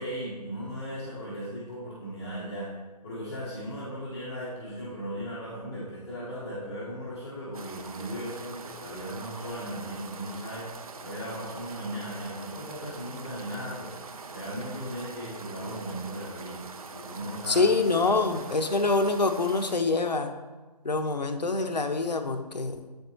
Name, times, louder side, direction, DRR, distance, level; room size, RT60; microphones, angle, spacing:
voice 1, 0.0-2.7 3.0-10.7 11.0-16.6 16.9-17.6 18.0-18.4, equal, 10° left, -11 dB, 0.6 m, -37 dB
sound 1, 7.5-19.7, right 4 dB, 60° right, 0.5 m, -43 dB
voice 2, 17.5-20.3 20.8-22.8, left 3 dB, 90° left, 7 dB, 0.6 m, -25 dB
7.8 x 4.4 x 2.7 m, 1.3 s
figure-of-eight pair, 155°, 21 cm